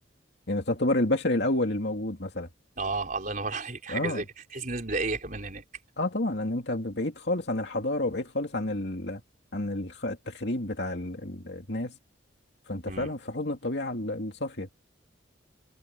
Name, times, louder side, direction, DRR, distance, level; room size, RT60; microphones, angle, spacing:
voice 1, 0.5-2.5 3.9-4.2 6.0-9.2 9.5-12.0 12.7-14.7, left 1 dB, 60° left, 2.8 m, -30 dB
voice 2, 2.8-4.3 4.5-5.6 12.9-13.1, right 3 dB, 45° right, 4.7 m, -32 dB
head